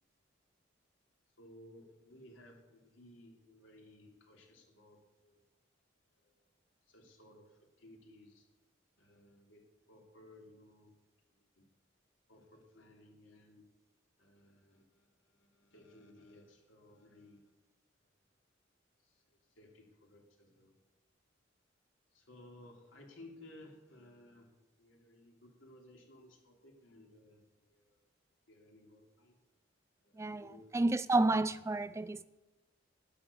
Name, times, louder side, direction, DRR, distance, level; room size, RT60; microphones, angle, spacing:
voice 1, 1.4-5.4 6.2-6.4 6.9-8.5 9.0-9.6 9.9-10.9 11.6-11.7 12.3-13.7 14.2-17.4 19.0-19.1 19.6-20.7 22.1-24.5 24.8-27.4 27.7-28.0 28.5-29.4 30.0-30.7, left 1 dB, 90° left, 0 dB, 3.1 m, -58 dB
voice 2, 30.2-32.2, right 2 dB, 15° right, 16 dB, 0.3 m, -31 dB
12.0 x 9.2 x 6.9 m, 1.1 s
head